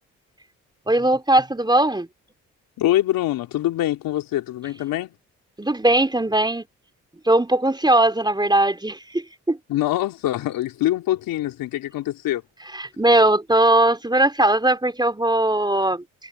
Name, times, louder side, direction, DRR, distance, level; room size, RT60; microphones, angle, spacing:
voice 1, 0.9-2.1 5.6-6.7 7.3-9.6 12.7-16.0, right 1 dB, 10° right, 3.6 m, -19 dB
voice 2, 2.8-5.2 9.7-12.4, left 14 dB, 75° left, 3.4 m, -24 dB
hypercardioid pair, 50°, 35 cm